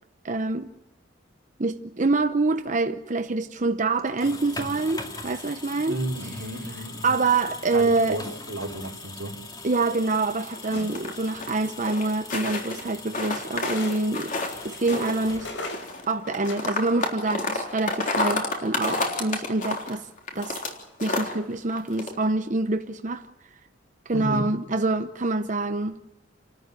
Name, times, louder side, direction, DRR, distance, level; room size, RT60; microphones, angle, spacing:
voice 1, 0.2-0.7 1.6-6.0 7.0-8.2 9.6-14.3 14.6-15.5 16.1-20.1 20.3-20.6 21.0-23.3 24.1-26.0, right 3 dB, 40° right, 0.8 m, -26 dB
sound 1, 4.0-15.9, left 3 dB, 20° left, 2.4 m, -41 dB
voice 2, 5.9-7.2 7.7-9.4 24.1-24.4, right 1 dB, 90° right, 3.2 m, -32 dB
sound 2, 9.7-11.6 11.9-12.8 13.1-14.6 14.9-20.7 21.0-21.3 21.7-22.1, left 2 dB, 45° left, 3.7 m, -29 dB
sound 3, 10.7-11.2 12.3-12.4 13.6-14.0 14.3-17.5 18.9-19.3, left 2 dB, 75° left, 6.6 m, -39 dB
29.0 x 13.5 x 9.7 m
head